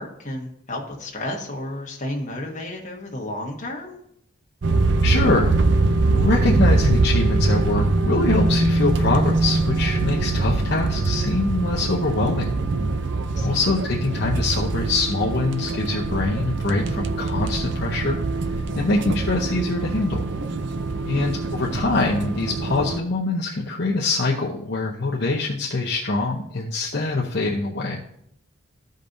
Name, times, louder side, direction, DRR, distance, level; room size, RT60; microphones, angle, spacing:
voice 1, 0.0-4.0 13.3-13.6 21.1-21.3, left 1 dB, 40° left, 0 dB, 1.4 m, -32 dB
sound 1, 4.6-23.0, right 3 dB, 60° right, 0.5 m, -23 dB
voice 2, 5.0-5.5 5.8-12.5 13.4-18.2 18.8-20.3 21.0-28.0, left 3 dB, 55° left, -3 dB, 0.8 m, -24 dB
14.0 x 5.2 x 2.6 m, 0.73 s
head